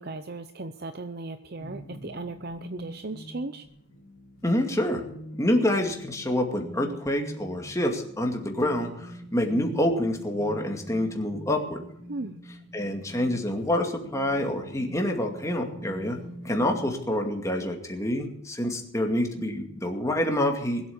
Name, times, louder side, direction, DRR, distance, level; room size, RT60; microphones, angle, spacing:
voice 1, 0.0-3.6 12.1-12.4, right 2 dB, 45° right, 9 dB, 0.7 m, -36 dB
sound 1, 1.6-17.0, equal, 85° left, 2.7 m, -44 dB
voice 2, 4.4-5.0 5.4-11.8 12.7-16.2 16.4-20.8, left 1 dB, 15° left, 3 dB, 2.2 m, -27 dB
20.5 x 8.4 x 7.0 m, 0.72 s
head